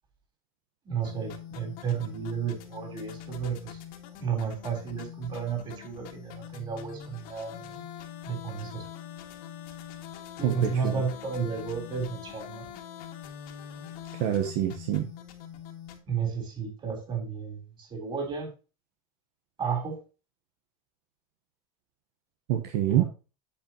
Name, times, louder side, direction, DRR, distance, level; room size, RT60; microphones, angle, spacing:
voice 1, 0.9-3.8 4.2-7.7 8.2-8.9 10.4-12.7 16.1-18.5 19.6-20.0 22.9-23.0, right 6 dB, 25° right, 3 dB, 3.6 m, -32 dB
sound 1, 1.0-16.0, left 9 dB, 55° left, 2.0 m, -44 dB
voice 2, 10.4-11.0 14.2-15.1 22.5-23.0, right 11 dB, 70° right, 4 dB, 1.2 m, -26 dB
8.7 x 7.4 x 2.9 m, 0.32 s
cardioid pair, 155°, 18 cm